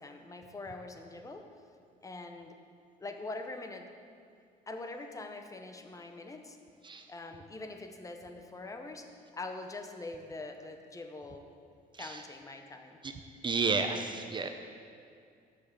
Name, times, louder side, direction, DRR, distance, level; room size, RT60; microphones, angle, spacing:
voice 1, 0.0-1.4 2.0-2.6 3.0-3.9 4.7-6.6 7.1-9.1 9.3-11.4 12.0-13.0, left 2 dB, 20° left, 5 dB, 0.7 m, -43 dB
voice 2, 13.4-14.5, right 4 dB, 30° right, 6 dB, 0.5 m, -32 dB
6.5 x 5.8 x 7.4 m, 2.3 s
cardioid pair, 110°, 17 cm